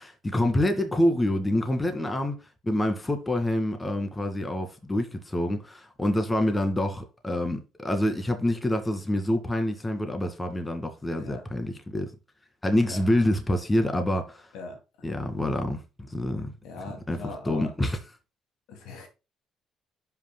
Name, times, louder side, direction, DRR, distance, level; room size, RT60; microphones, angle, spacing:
voice 1, 0.0-12.1 12.6-14.5 15.0-15.8 16.1-16.5 17.1-18.0, left 1 dB, 20° left, 2.2 m, -27 dB
voice 2, 16.6-17.7 18.7-19.1, left 3 dB, 80° left, 2.6 m, -40 dB
11.5 x 5.7 x 2.3 m
supercardioid pair, 70°, 0 cm